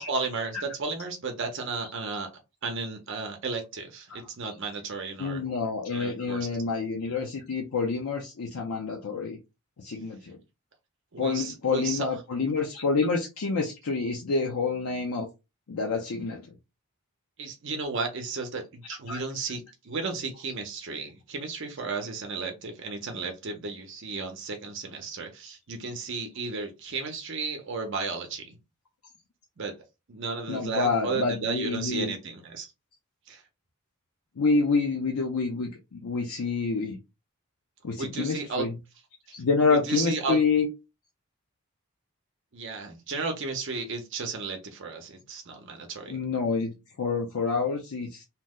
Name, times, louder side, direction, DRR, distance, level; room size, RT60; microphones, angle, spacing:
voice 1, 0.0-2.3 2.6-5.4 5.9-6.5 11.1-12.1 17.4-28.5 29.6-29.7 30.1-32.7 33.3-33.4 38.0-38.7 39.8-40.4 42.5-46.2, right 4 dB, 55° right, 0.6 m, -34 dB
voice 2, 5.2-9.4 9.8-10.4 11.2-15.3 15.7-16.5 19.1-19.2 30.5-32.1 34.4-37.0 37.8-38.7 39.3-40.7 46.1-48.2, left 4 dB, 80° left, 0.6 m, -28 dB
2.8 x 2.1 x 3.5 m
head